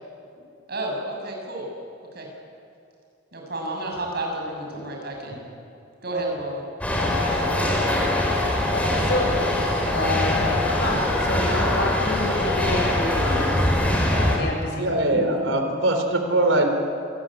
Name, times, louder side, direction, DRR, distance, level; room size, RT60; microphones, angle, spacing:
voice 1, 0.7-1.7 2.1-2.3 3.3-5.4 6.0-6.6, right 2 dB, 55° right, 0 dB, 6.6 m, -31 dB
sound 1, 6.8-14.4, left 1 dB, 5° left, 4.4 m, -23 dB
voice 2, 7.0-8.1 8.7-9.4 9.9-13.7 14.2-15.5, left 1 dB, 60° left, 0 dB, 7.2 m, -29 dB
voice 3, 14.8-16.7, right 1 dB, 80° right, 5 dB, 3.5 m, -22 dB
27.0 x 18.0 x 10.0 m, 2.5 s
head